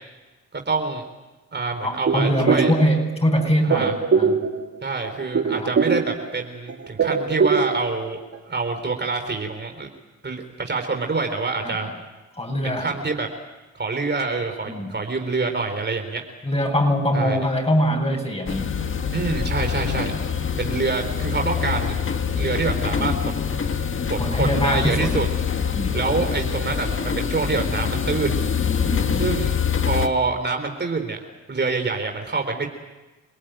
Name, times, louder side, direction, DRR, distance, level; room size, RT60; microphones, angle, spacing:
voice 1, 0.5-1.0 1.5-2.7 3.6-3.9 4.8-8.2 8.4-9.9 10.2-11.9 12.6-13.3 13.7-16.2 17.1-17.4 19.1-20.1 20.6-22.0 22.4-23.2 24.1-25.3 25.9-28.4 29.2-29.5 29.8-31.2 31.5-32.7, right 4 dB, 35° right, 4 dB, 4.2 m, -26 dB
voice 2, 1.8-4.3 5.4-5.7 11.6-11.9 12.4-12.9 14.7-15.0 16.4-18.7 24.2-25.1 25.7-25.9 28.9-29.3, equal, 20° left, 3 dB, 7.9 m, -23 dB
sound 1, 2.1-3.1 3.4-4.8 5.0-6.4 6.7-8.0 8.3-8.4, right 5 dB, 55° right, 3.2 m, -22 dB
sound 2, 18.5-30.1, left 7 dB, 45° left, 1.9 m, -25 dB
28.5 x 18.5 x 9.3 m, 1.2 s
supercardioid pair, 60°, 30 cm